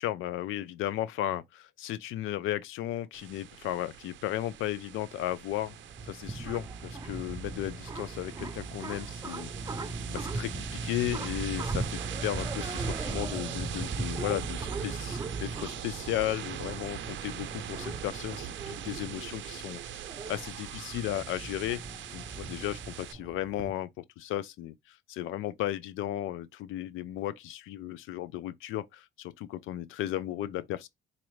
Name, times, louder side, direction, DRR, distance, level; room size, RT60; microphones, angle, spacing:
voice 1, 0.0-5.7 6.1-19.8 20.3-21.8 22.1-30.9, left 13 dB, 90° left, 0.5 m, -35 dB
sound 1, 3.1-23.1, right 10 dB, 70° right, 0.6 m, -42 dB
sound 2, 5.6-23.7, right 3 dB, 20° right, 0.5 m, -38 dB
4.2 x 2.5 x 3.1 m
cardioid pair, 90°, 20 cm